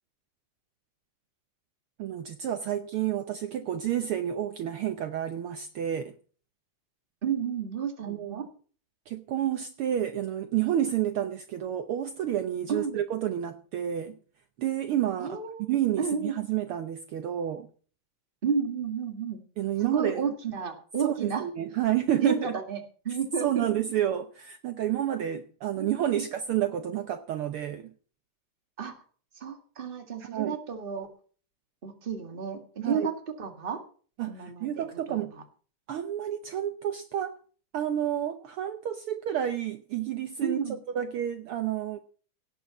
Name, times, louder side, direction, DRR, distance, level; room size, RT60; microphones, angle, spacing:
voice 1, 2.0-6.1 8.0-8.4 9.1-14.2 14.6-17.7 19.6-20.2 21.0-22.5 23.4-27.9 30.2-30.6 32.8-33.1 34.2-35.3 35.9-37.4 37.7-40.6 40.9-42.0, right 11 dB, 80° right, 9 dB, 1.2 m, -30 dB
voice 2, 7.2-8.5 12.7-13.0 15.2-15.6 16.0-16.4 18.4-19.4 19.8-21.4 22.2-23.6 25.8-26.3 28.8-28.9 29.4-31.1 31.8-33.1 33.4-33.8 34.3-35.4 40.4-40.8, right 6 dB, 25° right, 6 dB, 1.5 m, -32 dB
17.5 x 6.9 x 7.0 m, 0.42 s
omnidirectional pair, 3.6 m